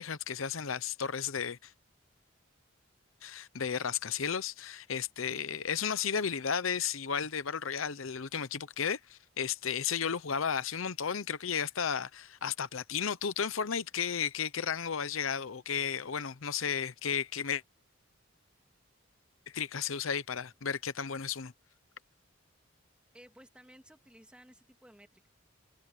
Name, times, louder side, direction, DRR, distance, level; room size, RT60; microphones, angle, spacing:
voice 1, 0.0-1.7 3.2-17.6 19.5-21.5, left 7 dB, 80° left, 0.8 m, -33 dB
voice 2, 23.1-25.3, equal, 5° right, 2.2 m, -56 dB
head